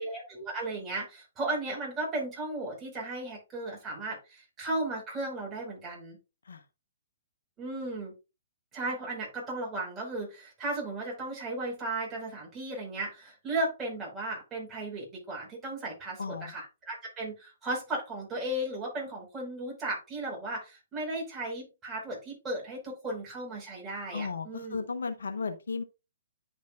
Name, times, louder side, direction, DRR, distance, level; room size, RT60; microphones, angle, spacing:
voice 1, 0.0-6.2 7.6-8.1 8.7-24.8, right 2 dB, 15° right, 4.7 m, -35 dB
voice 2, 16.2-16.5 24.1-25.8, left 4 dB, 70° left, 1.0 m, -35 dB
10.5 x 5.1 x 2.4 m
figure-of-eight pair, 125°, 0 cm